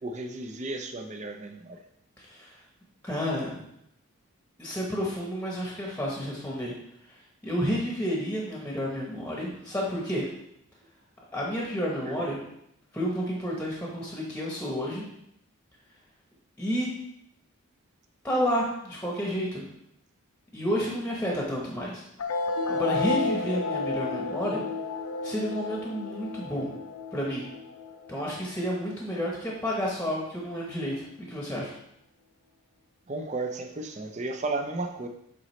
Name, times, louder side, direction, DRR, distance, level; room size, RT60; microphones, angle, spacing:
voice 1, 0.0-1.8 12.0-12.2 33.1-35.1, right 2 dB, 30° right, 5 dB, 0.5 m, -34 dB
voice 2, 2.2-2.6 3.0-3.6 4.6-6.7 7.0-10.3 11.3-12.4 12.9-15.0 16.6-16.9 18.2-19.7 20.5-22.0 22.7-24.6 25.2-26.8 27.1-27.5 28.1-31.7, equal, 5° left, -3 dB, 0.9 m, -30 dB
sound 1, 22.2-29.2, left 3 dB, 75° left, 0.5 m, -32 dB
7.7 x 4.0 x 3.2 m, 0.78 s
head